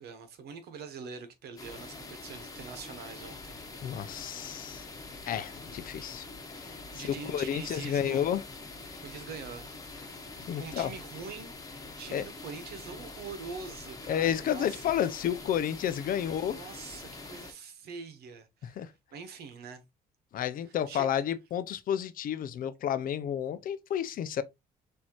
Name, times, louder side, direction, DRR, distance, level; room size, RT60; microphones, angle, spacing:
voice 1, 0.0-3.6 6.9-8.3 9.0-10.0 10.6-11.5 12.0-14.8 16.2-18.8 19.1-19.8 20.9-21.1, right 5 dB, 70° right, 1.2 m, -44 dB
sound 1, 1.6-17.5, left 3 dB, 20° left, 1.2 m, -45 dB
voice 2, 3.8-4.9 5.3-6.3 6.6-8.4 10.5-10.9 12.1-12.2 14.1-16.7 18.6-18.9 20.3-24.4, left 9 dB, 55° left, 0.6 m, -31 dB
6.2 x 2.8 x 3.0 m
cardioid pair, 110°, 17 cm